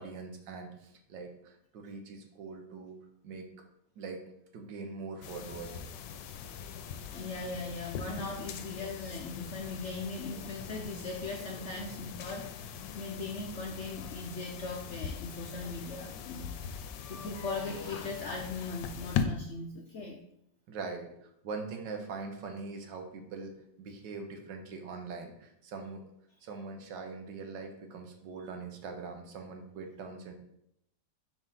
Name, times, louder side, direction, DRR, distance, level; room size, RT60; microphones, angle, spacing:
voice 1, 0.0-3.0 3.2-3.5 4.0-4.2 4.5-5.8 20.7-23.5 23.8-26.0 26.4-30.3, right 4 dB, 85° right, 4 dB, 1.6 m, -42 dB
sound 1, 5.2-19.3, left 7 dB, 90° left, 1.3 m, -40 dB
voice 2, 7.1-20.2, left 3 dB, 65° left, 1 dB, 0.7 m, -39 dB
5.0 x 3.7 x 5.4 m, 0.76 s
omnidirectional pair, 1.9 m